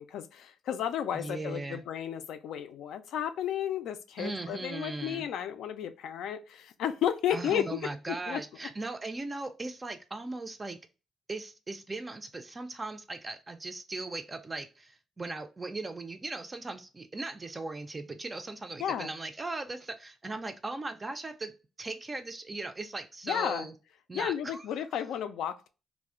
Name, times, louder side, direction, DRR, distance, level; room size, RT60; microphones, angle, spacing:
voice 1, 0.0-7.8 8.1-8.4 18.8-19.1 23.2-23.7 24.1-25.7, left 9 dB, 80° left, 0.3 m, -33 dB
voice 2, 1.1-1.8 4.2-5.2 7.3-10.8 11.3-21.5 21.8-23.7 24.1-24.7, right 2 dB, 25° right, 0.3 m, -38 dB
2.5 x 2.0 x 3.6 m
cardioid pair, 90°, 0 cm